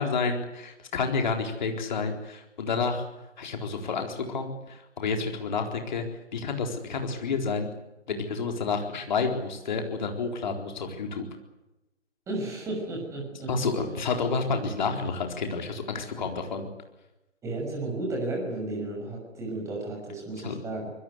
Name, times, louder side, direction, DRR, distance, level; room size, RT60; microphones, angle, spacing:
voice 1, 0.0-3.0 3.4-6.1 6.3-7.7 8.1-11.2 13.5-16.7 20.4-20.6, left 4 dB, 40° left, 4 dB, 4.1 m, -29 dB
voice 2, 12.3-13.5 17.4-20.9, right 2 dB, 10° right, 0 dB, 6.1 m, -33 dB
25.0 x 21.0 x 8.2 m, 0.99 s
figure-of-eight pair, 140°, 36 cm